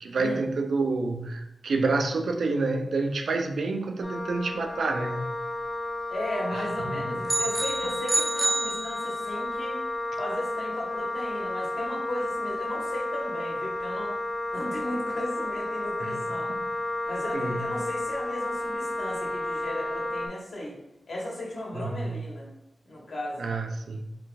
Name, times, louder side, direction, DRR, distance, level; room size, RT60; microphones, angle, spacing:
voice 1, 0.0-5.3 6.8-7.2 16.0-16.2 16.5-16.7 17.3-17.6 21.7-22.2 23.4-24.2, right 3 dB, 90° right, 5 dB, 0.5 m, -28 dB
Wind instrument woodwind instrument, 4.0-20.3, left 2 dB, 30° left, 1.0 m, -32 dB
voice 2, 6.1-9.8 10.1-14.2 14.5-16.5 17.1-20.7 21.1-22.5 22.8-23.4, left 1 dB, 75° left, -4 dB, 1.5 m, -35 dB
sound 1, 7.3-9.5, right 2 dB, 20° right, 0.3 m, -28 dB
4.4 x 2.4 x 3.9 m, 0.87 s
wide cardioid pair, 95°, 0 cm